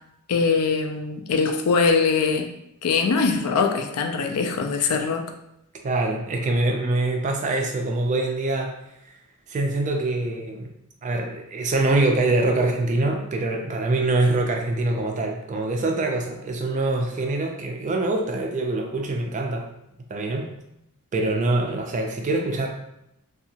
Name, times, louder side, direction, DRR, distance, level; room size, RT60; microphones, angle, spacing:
voice 1, 0.3-2.5 2.8-5.3, left 5 dB, 80° left, 5 dB, 0.4 m, -22 dB
voice 2, 5.8-8.7 9.5-10.7 11.0-19.7 20.1-20.5 21.1-22.7, right 2 dB, 35° right, 2 dB, 0.3 m, -24 dB
2.7 x 2.3 x 2.7 m, 0.83 s
head